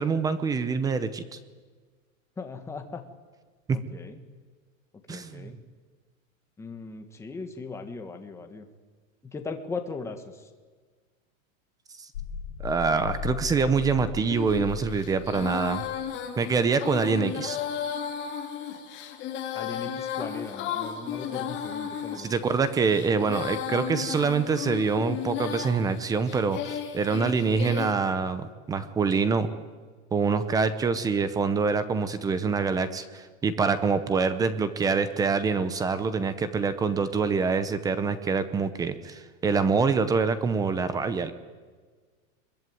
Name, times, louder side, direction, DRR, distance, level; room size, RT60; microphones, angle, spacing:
voice 1, 0.0-1.4 3.7-3.8 5.1-5.6 12.6-15.8 16.4-17.6 22.2-29.5 30.1-41.3, right 5 dB, 10° right, 12 dB, 0.7 m, -25 dB
voice 2, 2.4-3.0 3.7-4.2 5.1-5.6 6.6-8.7 9.2-10.5 19.5-22.3, left 4 dB, 5° left, 5 dB, 1.6 m, -38 dB
sound 1, 12.1-16.2, left 7 dB, 85° left, 5.9 m, -37 dB
Female singing, 14.3-27.9, left 9 dB, 25° left, 2.7 m, -34 dB
24.0 x 22.0 x 9.4 m, 1.4 s
supercardioid pair, 165°, 41 cm